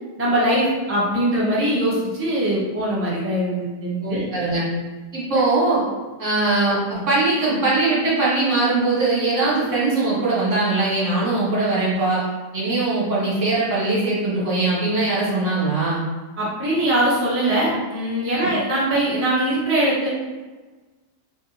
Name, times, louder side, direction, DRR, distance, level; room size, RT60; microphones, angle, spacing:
voice 1, 0.2-4.2 16.4-20.1, right 1 dB, 20° right, -7 dB, 0.3 m, -21 dB
voice 2, 4.0-4.6 5.1-5.8 6.2-12.2 12.5-16.0 18.3-18.5, right 2 dB, 45° right, -8 dB, 1.7 m, -21 dB
3.7 x 3.3 x 2.8 m, 1.3 s
omnidirectional pair, 1.8 m